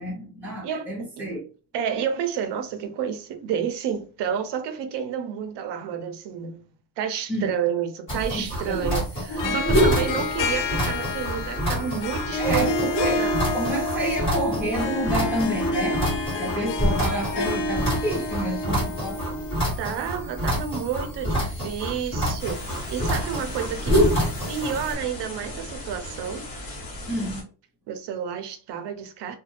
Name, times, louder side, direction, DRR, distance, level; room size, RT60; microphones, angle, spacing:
voice 1, 0.0-1.4 7.3-7.5 8.3-8.9 9.3-10.3 12.4-13.2 13.5-16.0 16.4-19.4 27.1-27.4, right 1 dB, 5° right, 0.8 m, -29 dB
voice 2, 1.7-6.6 7.0-13.4 19.8-24.0 24.5-26.5 27.9-29.4, right 8 dB, 60° right, 0.6 m, -30 dB
sound 1, 8.1-24.9, equal, 25° left, 1.3 m, -27 dB
Harp, 9.3-19.6, left 3 dB, 65° left, 0.5 m, -29 dB
sound 2, 22.4-27.4, left 1 dB, 45° left, 1.1 m, -37 dB
2.4 x 2.3 x 3.2 m
cardioid pair, 175°, 47 cm